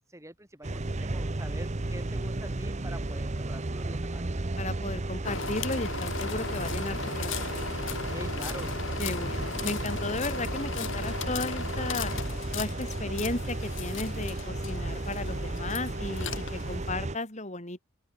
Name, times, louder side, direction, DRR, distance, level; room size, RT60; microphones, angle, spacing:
voice 1, 0.1-4.3 8.1-8.7, right 1 dB, 15° right, 7.5 m, -45 dB
sound 1, 0.6-17.2, right 2 dB, 35° right, 0.9 m, -34 dB
voice 2, 4.6-7.6 9.0-12.1 12.5-17.8, left 2 dB, 35° left, 4.3 m, -35 dB
sound 2, 5.2-16.9, left 5 dB, 65° left, 3.3 m, -37 dB
open air
head